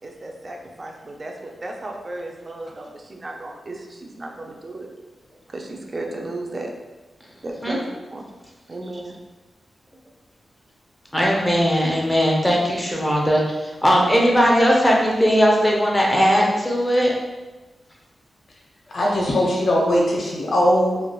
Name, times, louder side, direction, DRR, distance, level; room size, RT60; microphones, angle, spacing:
voice 1, 0.0-4.9 5.5-6.7 7.4-7.9 8.1-8.3 8.7-9.2, right 2 dB, 40° right, 1 dB, 0.4 m, -34 dB
voice 2, 11.1-13.4 13.8-17.1, equal, 10° left, -2 dB, 0.6 m, -18 dB
voice 3, 18.9-21.0, equal, 65° left, -3 dB, 0.7 m, -20 dB
3.2 x 2.3 x 2.2 m, 1.2 s
cardioid pair, 75°, 0 cm